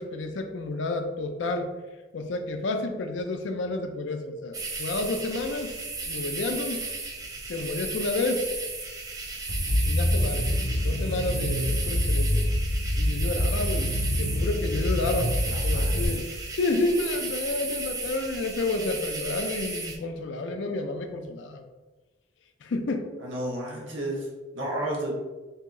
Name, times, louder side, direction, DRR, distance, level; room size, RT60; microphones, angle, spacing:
voice 1, 0.0-1.7 2.1-5.8 6.1-6.9 7.5-8.5 9.8-10.6 10.8-12.4 13.0-15.4 15.6-16.2 16.6-21.6 22.6-23.1, left 2 dB, 70° left, 6 dB, 0.4 m, -30 dB
sound 1, 4.5-20.0, right 3 dB, 20° right, 0.4 m, -35 dB
sound 2, 9.5-16.0, left 1 dB, 50° left, 0.8 m, -26 dB
voice 2, 15.4-16.2 23.2-24.3 24.5-25.1, right 1 dB, 80° right, -2 dB, 0.9 m, -32 dB
3.0 x 2.7 x 3.6 m, 1.2 s
head